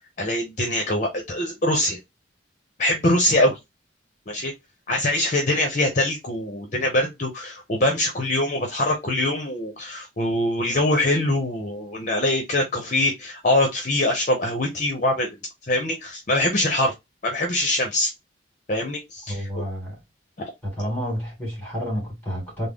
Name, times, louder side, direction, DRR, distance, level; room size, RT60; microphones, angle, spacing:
voice 1, 0.2-2.0 2.8-3.6 4.3-4.5 4.9-15.4 15.7-16.9 17.2-18.1 18.7-19.6, left 1 dB, 40° left, 0.8 m, -23 dB
voice 2, 19.3-20.0 20.6-22.7, equal, 10° left, 2.3 m, -30 dB
3.7 x 2.1 x 3.5 m
head